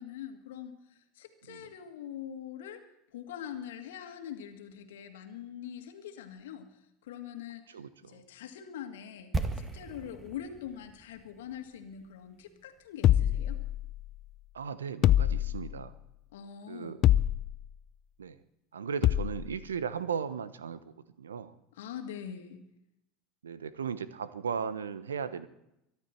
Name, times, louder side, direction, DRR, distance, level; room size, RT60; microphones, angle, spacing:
voice 1, 0.0-2.8 3.1-7.6 8.0-13.6 16.3-17.0 21.7-22.6, left 9 dB, 75° left, 6 dB, 2.1 m, -43 dB
voice 2, 7.7-8.2 14.5-15.9 16.7-17.0 18.2-18.4 18.7-21.5 23.4-25.5, right 6 dB, 85° right, 15 dB, 1.0 m, -36 dB
sound 1, 9.3-13.3 13.5-13.6, right 3 dB, 20° right, 1.9 m, -38 dB
sound 2, 13.0-14.1 15.0-15.9 17.0-17.7 19.0-19.5, left 12 dB, 50° left, 0.5 m, -25 dB
24.0 x 12.0 x 4.5 m, 0.82 s
hypercardioid pair, 80°, 0 cm